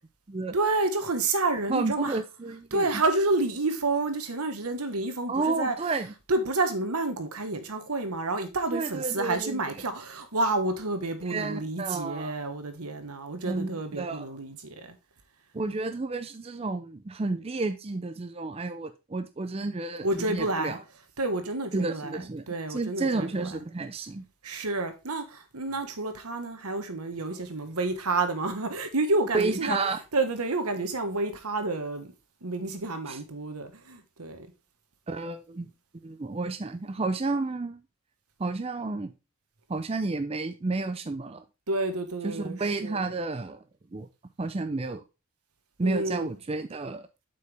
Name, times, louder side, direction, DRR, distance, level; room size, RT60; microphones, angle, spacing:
voice 1, 0.5-2.1 2.7-5.7 6.3-14.9 20.0-20.8 21.2-23.5 24.4-29.8 30.1-32.1 32.4-34.5 41.7-43.0 45.8-46.3, right 2 dB, 85° right, 1.3 m, -29 dB
voice 2, 1.7-3.0 5.3-6.1 8.7-9.9 11.2-12.3 13.4-14.3 15.5-20.8 21.7-22.4 22.7-24.3 29.3-30.0 33.1-33.2 35.1-35.7 36.0-37.8 38.4-39.1 39.7-41.4 42.2-43.6 43.9-44.1 44.4-45.0 45.8-47.1, right 3 dB, 25° right, 0.4 m, -31 dB
7.9 x 5.5 x 3.3 m
head